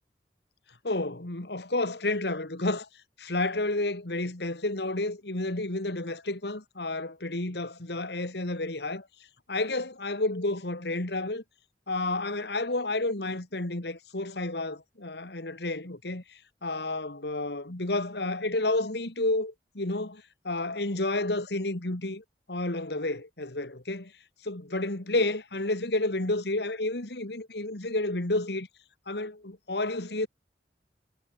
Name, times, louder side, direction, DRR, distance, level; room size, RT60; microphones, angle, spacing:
voice 1, 0.8-2.9 3.2-9.1 9.5-11.4 11.9-24.1 24.4-28.7 29.1-30.3, left 2 dB, 65° left, 2.1 m, -30 dB
head